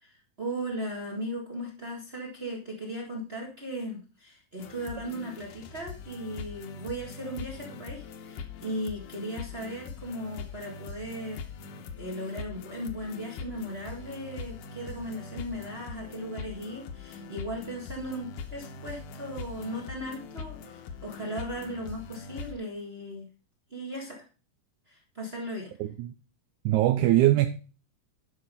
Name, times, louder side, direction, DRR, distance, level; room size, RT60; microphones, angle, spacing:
voice 1, 0.0-23.3 23.7-24.2 24.9-25.7, equal, 35° right, -1 dB, 1.0 m, -37 dB
sound 1, 4.6-22.5, left 5 dB, 75° left, 2.3 m, -42 dB
voice 2, 25.8-26.1 26.7-27.5, right 15 dB, 80° right, 8 dB, 1.8 m, -22 dB
11.5 x 5.5 x 5.4 m, 0.36 s
omnidirectional pair, 4.1 m